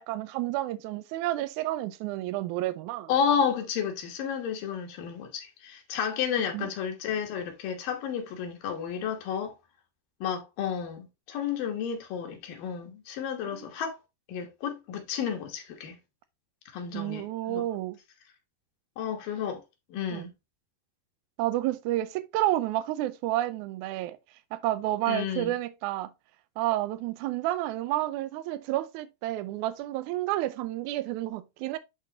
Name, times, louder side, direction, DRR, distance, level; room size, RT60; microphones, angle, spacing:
voice 1, 0.0-3.1 6.5-6.7 13.5-13.7 16.9-18.0 20.1-20.3 21.4-24.2 24.5-26.1 26.6-31.8, right 15 dB, 80° right, 1.9 m, -30 dB
voice 2, 3.1-9.5 10.2-14.0 14.3-16.0 16.7-17.6 19.0-19.6 19.9-20.3 25.1-25.5, left 7 dB, 80° left, 3.0 m, -31 dB
10.5 x 3.7 x 2.9 m
omnidirectional pair, 3.9 m